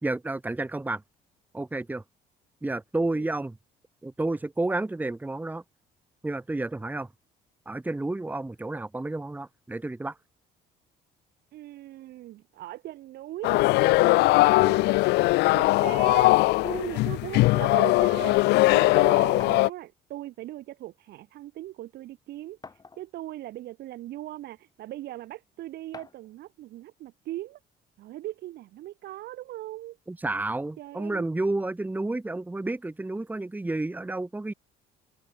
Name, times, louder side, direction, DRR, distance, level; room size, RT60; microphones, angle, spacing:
voice 1, 0.0-1.0 1.5-2.0 2.6-3.6 4.0-5.6 6.2-7.1 7.6-10.1 30.1-34.5, right 2 dB, 10° right, 1.5 m, -30 dB
voice 2, 11.5-15.0 15.5-16.3 16.6-22.6 23.0-27.6 28.0-30.0 30.8-31.3, right 15 dB, 75° right, 3.1 m, -39 dB
sound 1, 13.4-19.7, left 20 dB, 85° left, 0.5 m, -20 dB
sound 2, 19.4-19.7 20.8-20.9 21.3-21.4 22.6-23.3 24.1-24.2 25.9-26.3, left 4 dB, 25° left, 6.4 m, -47 dB
cardioid pair, 110°, 17 cm